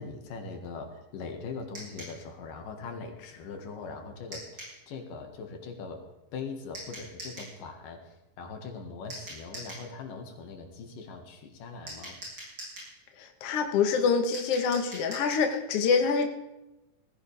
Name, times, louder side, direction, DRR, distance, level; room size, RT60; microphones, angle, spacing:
voice 1, 0.0-6.0 6.3-12.2, left 4 dB, 90° left, 3 dB, 3.4 m, -41 dB
sound 1, 1.7-2.2 4.3-4.8 6.7-7.5 9.1-9.9 11.9-12.9 14.3-15.5, right 1 dB, 35° right, 8.3 m, -42 dB
voice 2, 13.2-16.3, left 5 dB, 55° left, 4 dB, 2.0 m, -26 dB
19.0 x 15.5 x 3.5 m, 0.97 s
omnidirectional pair, 3.7 m